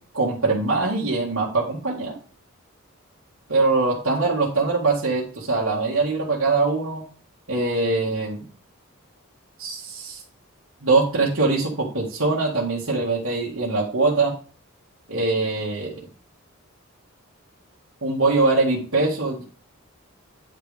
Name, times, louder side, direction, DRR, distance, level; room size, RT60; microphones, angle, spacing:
voice 1, 0.1-2.1 3.5-7.0 7.5-8.4 9.6-10.2 10.8-14.3 15.1-16.1 18.0-19.4, right 3 dB, 75° right, -6 dB, 2.0 m, -22 dB
9.4 x 6.0 x 3.5 m, 0.38 s
head